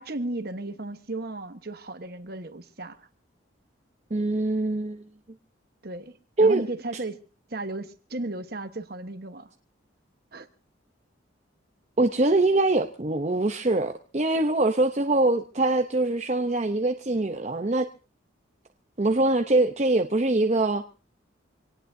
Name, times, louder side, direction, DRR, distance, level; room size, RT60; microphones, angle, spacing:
voice 1, 0.0-3.1 5.8-7.2 7.5-9.5 10.3-10.5, right 2 dB, 50° right, 9 dB, 1.2 m, -35 dB
voice 2, 4.1-5.0 6.4-6.6 12.0-17.9 19.0-20.8, right 2 dB, 35° right, 5 dB, 0.7 m, -23 dB
25.0 x 18.5 x 2.7 m, 0.34 s
head